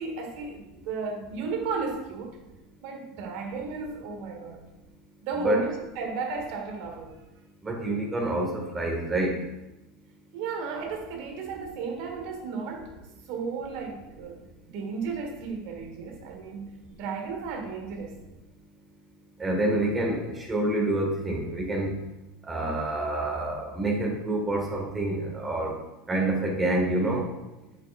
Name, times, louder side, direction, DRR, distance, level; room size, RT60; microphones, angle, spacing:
voice 1, 0.0-2.4 2.8-4.6 5.2-7.2 10.3-12.9 13.3-18.2, right 5 dB, 65° right, 3 dB, 1.5 m, -34 dB
voice 2, 7.6-9.3 19.4-20.2 20.5-22.0 22.5-25.7 26.1-27.2, right 1 dB, 20° right, 0 dB, 1.9 m, -27 dB
8.2 x 6.7 x 2.5 m, 0.98 s
supercardioid pair, 100°, 0 cm